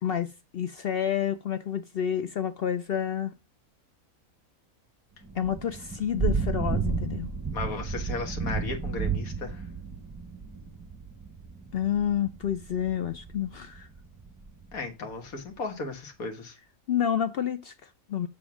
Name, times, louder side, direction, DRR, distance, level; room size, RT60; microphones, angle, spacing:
voice 1, 0.0-3.3 5.3-7.3 11.7-13.9 16.9-18.3, left 9 dB, 60° left, 0.6 m, -29 dB
Thunder / Rain, 5.2-14.8, right 5 dB, 15° right, 0.7 m, -33 dB
voice 2, 7.5-9.6 14.7-16.6, left 3 dB, 80° left, 1.8 m, -35 dB
7.7 x 3.9 x 5.9 m
omnidirectional pair, 1.5 m